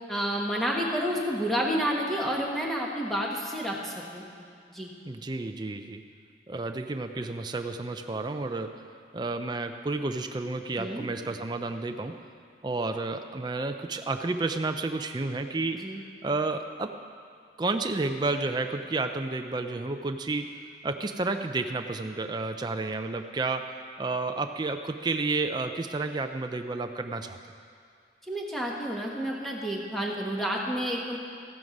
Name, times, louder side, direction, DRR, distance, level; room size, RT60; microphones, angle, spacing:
voice 1, 0.1-4.2 4.7-4.9 10.8-11.1 15.8-16.0 28.3-31.2, equal, ahead, -2 dB, 1.4 m, -30 dB
voice 2, 5.1-6.0 6.5-12.3 12.6-17.0 17.6-20.6 20.8-27.4, right 3 dB, 25° right, 6 dB, 0.4 m, -31 dB
14.0 x 9.5 x 5.3 m, 2.2 s
head